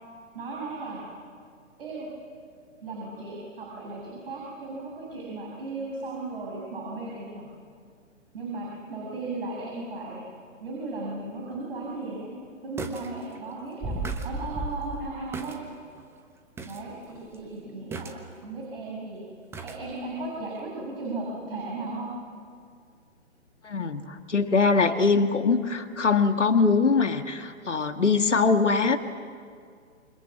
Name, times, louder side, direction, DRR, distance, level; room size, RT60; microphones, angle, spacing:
voice 1, 0.3-1.1 1.8-2.1 2.8-7.5 8.3-10.2 10.6-12.3 12.6-14.0 14.2-15.6 16.6-18.1 18.4-19.2 19.6-22.1, right 2 dB, 50° right, -3 dB, 7.2 m, -36 dB
sound 1, 11.6-11.7 12.8-13.1 13.4-13.5 13.8-15.6 16.0-16.1 16.6-16.8 17.1-17.4 17.9-18.5 19.5-19.8 20.2-20.3, right 2 dB, 5° right, 1.2 m, -34 dB
voice 2, 23.6-29.0, left 4 dB, 70° left, 7 dB, 1.8 m, -22 dB
28.5 x 25.0 x 7.4 m, 2.2 s
figure-of-eight pair, 125°, 37 cm